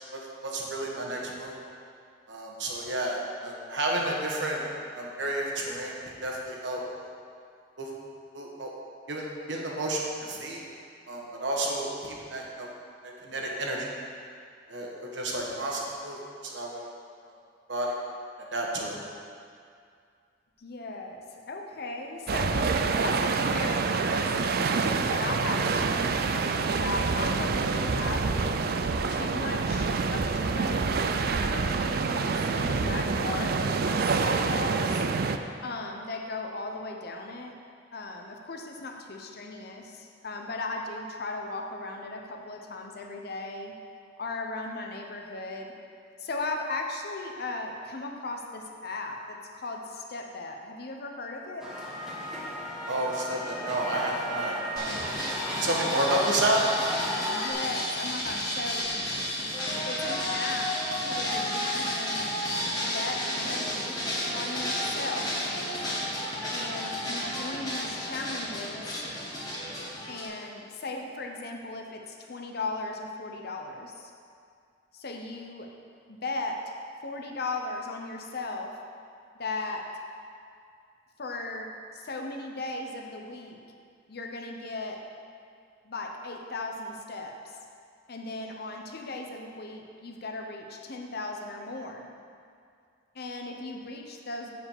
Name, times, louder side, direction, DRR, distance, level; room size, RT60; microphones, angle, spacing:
voice 1, 0.1-1.6 2.3-4.6 4.9-7.0 7.8-7.9 8.3-8.7 9.1-10.6 11.1-12.7 13.0-13.9 14.7-16.8 17.7-17.9 18.5-19.0 52.9-55.0 55.5-56.6, right 1 dB, 75° right, -1 dB, 1.3 m, -31 dB
voice 2, 20.6-28.3 29.1-35.0 35.6-37.6 37.9-43.7 44.2-45.7 46.2-51.7 54.2-54.4 57.3-58.9 59.8-62.3 62.8-63.9 64.3-65.5 66.5-69.0 70.1-74.1 74.9-75.7 76.1-76.7 77.0-78.8 79.4-80.0 81.2-83.6 84.1-85.1 85.8-87.6 88.1-92.1 93.1-94.5, left 2 dB, 55° left, 3 dB, 0.8 m, -37 dB
sound 1, 22.3-35.4, right 4 dB, 55° right, 0.4 m, -27 dB
sound 2, 51.6-57.5, equal, 5° right, 1.1 m, -34 dB
sound 3, 54.8-70.3, left 1 dB, 20° left, 1.8 m, -32 dB
7.4 x 4.8 x 7.2 m, 2.3 s
head